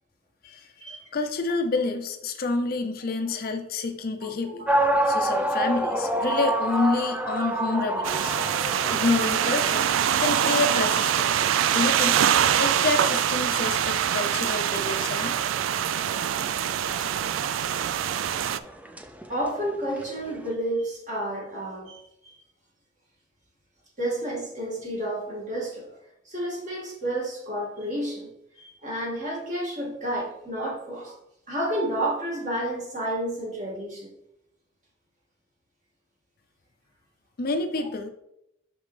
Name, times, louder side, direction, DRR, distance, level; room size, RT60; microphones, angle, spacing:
voice 1, 1.1-4.7 5.1-8.4 8.9-9.9 10.2-12.2 12.6-15.4 37.4-38.1, left 3 dB, 50° left, 7 dB, 0.5 m, -28 dB
sound 1, 4.7-20.5, right 1 dB, 5° right, 0.4 m, -30 dB
sound 2, 8.0-18.6, right 9 dB, 85° right, 0.3 m, -24 dB
voice 2, 19.3-22.3 24.0-26.0 26.3-28.3 28.6-31.2 31.5-34.1, right 1 dB, 40° right, -3 dB, 2.0 m, -30 dB
6.0 x 5.1 x 3.2 m, 0.79 s
head